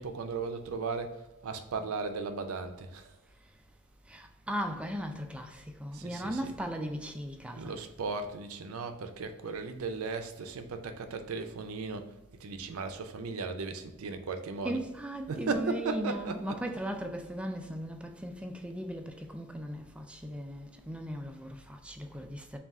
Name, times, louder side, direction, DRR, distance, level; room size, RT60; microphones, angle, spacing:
voice 1, 0.0-3.1 5.9-6.5 7.5-12.1 12.4-14.8 15.3-16.6, right 4 dB, 75° right, 0.5 m, -36 dB
voice 2, 4.1-7.7 14.6-22.6, equal, 5° right, 0.3 m, -37 dB
3.5 x 2.4 x 4.1 m
head